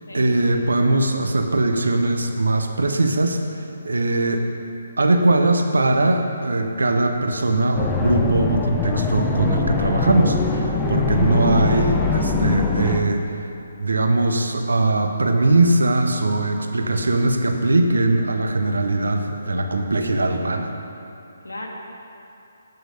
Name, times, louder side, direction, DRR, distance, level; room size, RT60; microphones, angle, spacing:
voice 1, 0.1-4.4 5.0-13.2 13.8-20.7, right 2 dB, 75° right, 5 dB, 1.0 m, -20 dB
sound 1, 7.7-13.0, left 3 dB, 10° left, 0.6 m, -22 dB
voice 2, 11.1-11.5 18.7-19.1 21.4-21.7, left 1 dB, 85° left, 0 dB, 1.7 m, -35 dB
8.7 x 6.2 x 6.6 m, 2.8 s
figure-of-eight pair, 140°, 0 cm